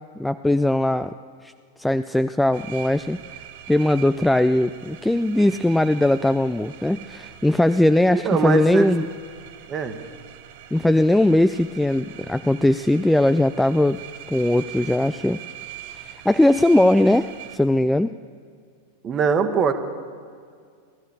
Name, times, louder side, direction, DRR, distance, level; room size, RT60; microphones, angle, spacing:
voice 1, 0.2-1.1 1.4-1.5 1.8-3.2 3.7-9.1 10.7-14.0 14.3-15.4 16.3-18.1, left 1 dB, 5° left, 11 dB, 0.3 m, -19 dB
sound 1, 2.5-17.6, right 11 dB, 50° right, 0.8 m, -42 dB
voice 2, 8.1-8.9 9.7-10.0 19.0-19.7, right 6 dB, 25° right, 8 dB, 1.2 m, -22 dB
16.0 x 12.5 x 7.0 m, 2.2 s
figure-of-eight pair, 90°, 0 cm